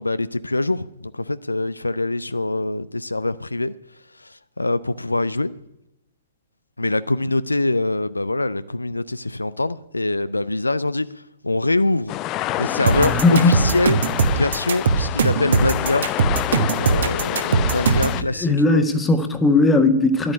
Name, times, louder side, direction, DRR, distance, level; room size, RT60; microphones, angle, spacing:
voice 1, 0.0-3.7 4.2-5.5 6.8-12.1 12.6-14.0 14.3-16.1 16.8-18.8, left 2 dB, 80° left, 0.5 m, -24 dB
sound 1, 12.1-18.2, left 15 dB, 25° left, 0.4 m, -27 dB
sound 2, 12.9-18.2, right 5 dB, 55° right, 1.4 m, -20 dB
voice 2, 13.0-13.6 18.1-20.3, left 2 dB, 10° left, 1.3 m, -18 dB
11.0 x 8.8 x 9.9 m
figure-of-eight pair, 115°, 0 cm